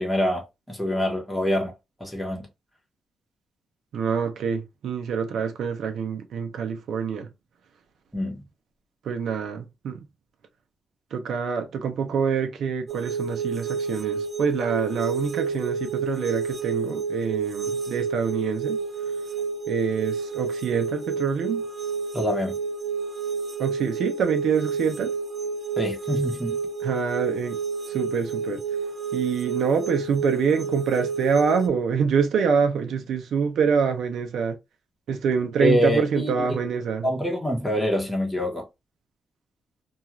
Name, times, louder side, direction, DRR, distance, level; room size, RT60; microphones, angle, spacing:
voice 1, 0.0-1.7 2.0-2.5 8.1-8.4 22.1-22.5 25.8-26.6 35.6-36.6 37.0-38.6, left 1 dB, ahead, 0.9 m, -25 dB
voice 2, 3.9-7.3 9.0-10.0 11.1-18.8 19.7-21.6 23.6-25.1 26.8-27.6 27.9-28.6 29.1-34.6 35.1-37.1, right 6 dB, 85° right, 0.5 m, -26 dB
sound 1, 12.9-31.7, right 5 dB, 40° right, 0.5 m, -30 dB
2.4 x 2.4 x 2.9 m
wide cardioid pair, 125°, 0 cm